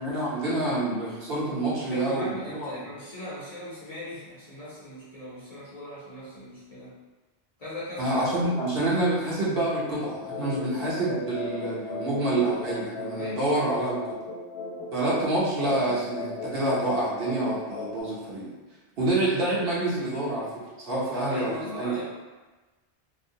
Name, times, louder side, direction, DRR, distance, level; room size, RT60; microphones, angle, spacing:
voice 1, 0.0-2.8 8.0-14.0 14.9-18.5 19.0-20.5 20.8-21.9, right 2 dB, 65° right, -7 dB, 0.9 m, -27 dB
voice 2, 1.9-7.0 7.6-8.7 13.1-13.9 21.2-22.1, left 1 dB, 40° left, -10 dB, 0.7 m, -39 dB
sound 1, 9.8-18.0, left 3 dB, 75° left, 0.8 m, -36 dB
2.5 x 2.1 x 2.6 m, 1.2 s
omnidirectional pair, 1.1 m